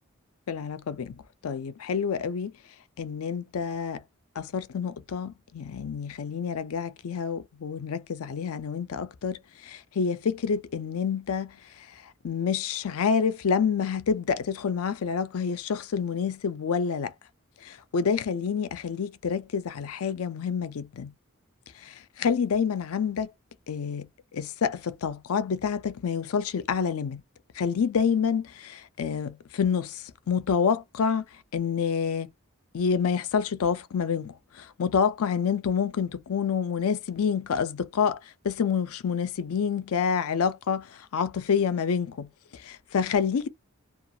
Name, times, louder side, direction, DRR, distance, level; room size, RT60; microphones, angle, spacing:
voice 1, 0.5-1.1 1.4-2.5 3.0-4.0 4.4-11.5 12.2-17.1 17.6-21.1 21.8-23.3 23.7-24.1 24.3-27.2 27.6-31.3 31.5-32.3 32.7-38.2 38.4-40.9 41.1-43.5, left 6 dB, 80° left, 0.4 m, -28 dB
2.4 x 2.3 x 2.7 m
head